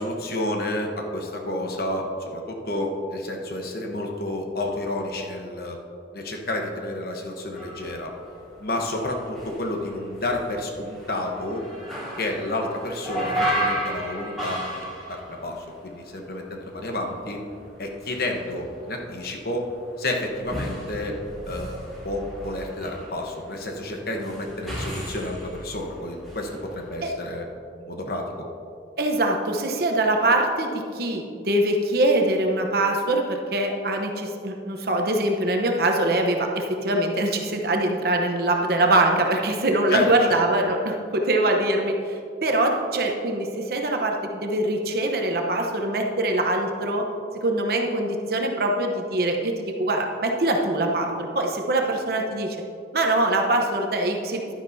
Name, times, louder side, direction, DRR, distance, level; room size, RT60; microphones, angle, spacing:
voice 1, 0.0-5.8 6.1-8.1 8.6-11.6 12.2-17.4 17.8-19.6 20.0-21.2 21.5-27.4 27.8-28.2 39.9-40.4, left 1 dB, 55° left, 1 dB, 1.1 m, -30 dB
sound 1, 7.5-16.4 16.7-26.9, equal, ahead, 2.5 m, -34 dB
voice 2, 29.0-47.1 47.4-52.6 52.9-54.5, right 1 dB, 55° right, 2 dB, 0.9 m, -23 dB
11.0 x 10.0 x 2.7 m, 2.5 s
head